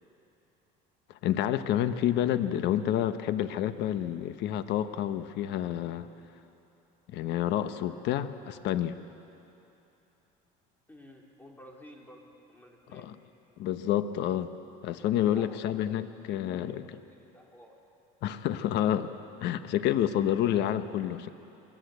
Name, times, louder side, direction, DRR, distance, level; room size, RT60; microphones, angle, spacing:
voice 1, 1.2-6.1 7.1-9.0 12.9-13.2 13.6-14.5 14.8-17.0 18.2-19.1 19.4-21.3, left 11 dB, 60° left, 11 dB, 1.2 m, -29 dB
voice 2, 10.9-12.2 12.5-13.1 15.2-17.7, equal, 10° left, -1 dB, 4.1 m, -53 dB
28.0 x 21.0 x 8.2 m, 2.9 s
cardioid pair, 120°, 20 cm